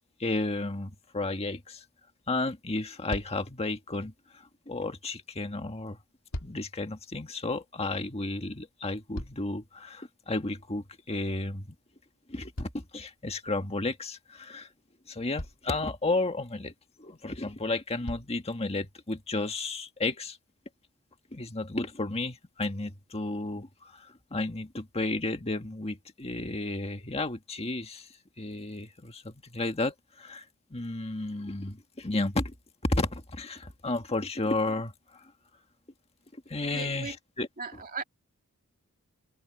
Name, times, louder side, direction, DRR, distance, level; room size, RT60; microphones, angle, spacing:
voice 1, 0.2-1.9 2.3-4.1 4.7-6.0 6.4-11.8 12.3-14.7 15.1-16.7 17.0-20.4 21.3-28.1 28.4-30.5 30.7-32.5 32.8-35.3 36.3-37.5, left 2 dB, 30° left, 1.7 m, -32 dB
sound 1, 3.1-3.6 5.9-6.8 8.7-9.8 12.5-13.5 14.7-14.8 15.3-15.8 17.2-17.3 18.0-18.5 19.3-19.4, left 1 dB, 70° left, 2.7 m, -41 dB
voice 2, 36.7-37.2 37.6-38.0, right 5 dB, 40° right, 2.5 m, -37 dB
head